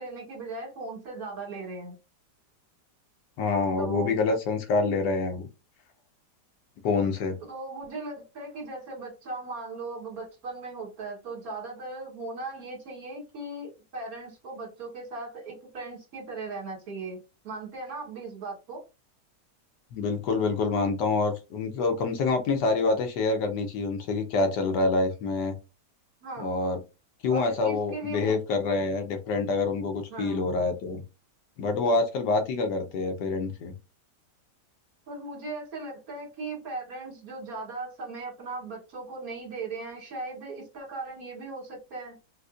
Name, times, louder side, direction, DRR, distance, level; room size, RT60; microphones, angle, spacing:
voice 1, 0.0-2.0 3.8-4.1 7.5-18.8 26.2-26.5 27.3-28.4 30.1-30.6 35.1-42.2, right 3 dB, 60° right, 0 dB, 1.6 m, -38 dB
voice 2, 3.4-5.5 6.8-7.4 19.9-25.6 26.4-26.8 27.2-31.0 31.6-33.7, left 3 dB, 80° left, 6 dB, 1.3 m, -26 dB
3.9 x 2.5 x 2.4 m, 0.28 s
omnidirectional pair, 1.8 m